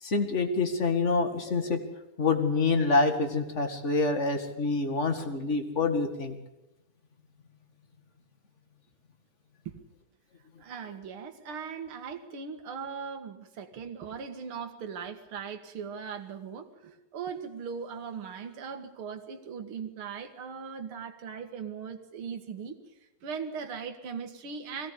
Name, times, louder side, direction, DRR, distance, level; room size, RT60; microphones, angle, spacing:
voice 1, 0.0-1.8 2.2-6.4, left 3 dB, 30° left, 7 dB, 1.8 m, -26 dB
voice 2, 10.6-22.8 23.2-24.9, right 6 dB, 50° right, 6 dB, 2.3 m, -39 dB
21.0 x 17.0 x 8.4 m, 0.97 s
omnidirectional pair, 3.3 m